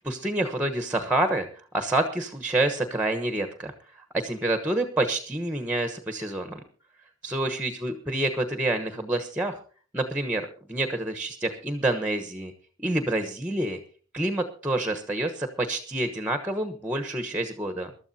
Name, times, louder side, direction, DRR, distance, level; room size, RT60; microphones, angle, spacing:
voice 1, 0.0-1.5 1.7-6.6 7.2-9.6 9.9-12.5 12.8-13.8 14.1-17.9, right 2 dB, 10° right, 8 dB, 1.1 m, -28 dB
22.5 x 12.5 x 2.8 m, 0.41 s
head